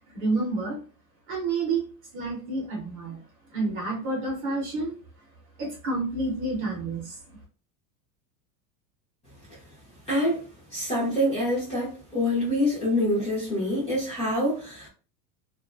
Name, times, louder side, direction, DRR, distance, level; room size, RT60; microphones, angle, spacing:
voice 1, 0.1-0.8 1.3-1.9 2.1-3.2 3.5-4.9 5.6-7.2, right 3 dB, 30° right, -3 dB, 0.8 m, -29 dB
voice 2, 10.1-10.4 10.7-14.9, left 1 dB, 15° left, -6 dB, 0.7 m, -26 dB
2.5 x 2.4 x 2.4 m, 0.36 s
supercardioid pair, 165°, 44 cm